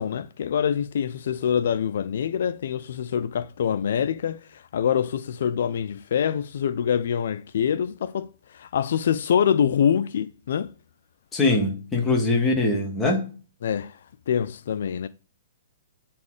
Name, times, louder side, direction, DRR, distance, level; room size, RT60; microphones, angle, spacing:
voice 1, 0.0-10.7 12.1-12.2 13.6-14.0 14.3-15.1, left 8 dB, 60° left, 0.4 m, -25 dB
voice 2, 11.3-13.2, left 2 dB, 10° left, 1.7 m, -22 dB
8.7 x 4.3 x 4.8 m
hypercardioid pair, 165°, 0 cm